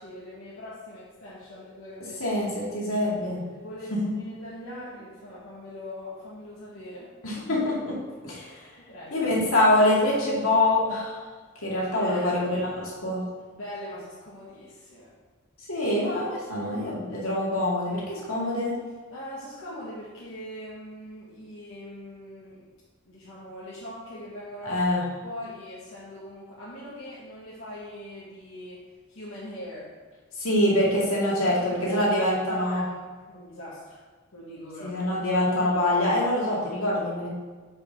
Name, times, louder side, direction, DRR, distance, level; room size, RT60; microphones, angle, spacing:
voice 1, 0.0-2.2 3.5-7.1 8.8-9.3 12.0-12.6 13.5-15.1 16.6-16.7 19.1-22.7 23.0-24.8 25.2-29.9 31.2-32.9 33.3-34.0 34.3-35.1, left 1 dB, 75° left, -8 dB, 1.5 m, -41 dB
voice 2, 2.2-3.4 3.9-4.1 7.2-8.0 8.2-8.7 9.1-11.3 11.6-13.3 15.6-18.8 24.6-25.0 30.3-32.9 34.8-37.3, left 1 dB, 90° left, -5 dB, 2.3 m, -25 dB
5.4 x 5.2 x 5.7 m, 1.4 s
head